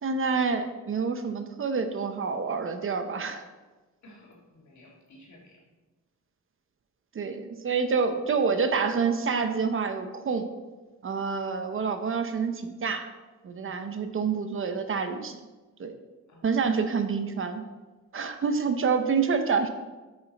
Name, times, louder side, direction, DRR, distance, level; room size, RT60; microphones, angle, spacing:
voice 1, 0.0-3.4 7.1-10.5 11.0-13.1 13.4-15.4 15.8-16.0 16.4-17.6 18.1-19.7, right 5 dB, 45° right, 8 dB, 0.7 m, -27 dB
voice 2, 4.0-5.6 13.5-13.8 16.3-16.4, left 1 dB, 65° left, -1 dB, 2.1 m, -53 dB
8.7 x 6.5 x 4.1 m, 1.2 s
wide cardioid pair, 130°, 30 cm